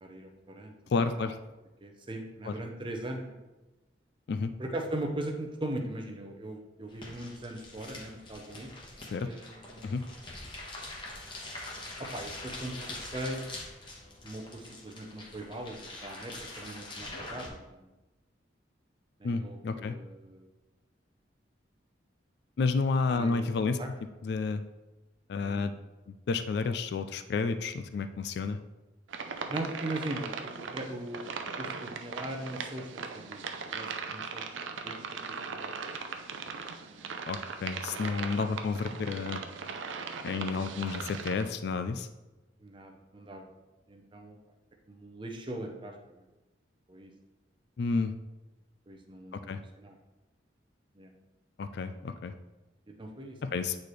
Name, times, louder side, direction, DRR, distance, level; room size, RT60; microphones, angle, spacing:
voice 1, 0.0-0.7 1.2-1.3 1.8-3.4 4.6-8.7 9.1-10.0 12.0-13.4 14.2-17.9 19.2-20.5 23.1-23.9 25.4-25.6 29.5-33.4 33.7-34.4 34.8-35.7 36.1-36.2 40.4-40.9 42.6-43.5 43.9-44.4 44.9-46.2 46.9-47.1 48.9-49.5 49.8-50.0 50.9-51.1 53.0-53.5, right 1 dB, 25° right, 3 dB, 0.7 m, -40 dB
voice 2, 0.9-1.4 2.4-2.5 4.3-4.5 9.1-9.3 9.8-10.0 19.2-20.0 22.6-23.8 24.2-24.6 25.3-25.7 26.3-28.6 37.3-39.4 40.2-42.1 47.8-48.1 49.3-49.6 51.6-52.3 53.4-53.8, left 4 dB, 60° left, 10 dB, 0.3 m, -30 dB
sound 1, 6.9-17.5, left 2 dB, 25° left, 1.1 m, -44 dB
sound 2, 29.1-41.4, right 5 dB, 85° right, 0.5 m, -39 dB
8.3 x 4.2 x 3.2 m, 1.1 s
head